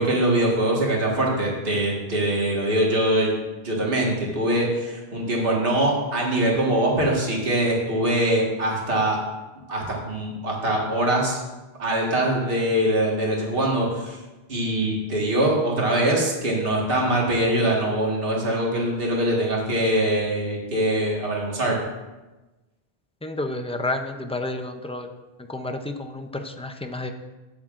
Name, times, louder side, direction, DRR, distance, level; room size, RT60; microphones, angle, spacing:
voice 1, 0.0-9.2 9.7-11.4 11.8-14.2 14.5-21.8, right 1 dB, 55° right, -3 dB, 1.8 m, -23 dB
voice 2, 23.2-25.1 25.5-27.1, left 2 dB, 10° left, 5 dB, 0.3 m, -30 dB
13.0 x 8.8 x 2.5 m, 1.1 s
omnidirectional pair, 1.1 m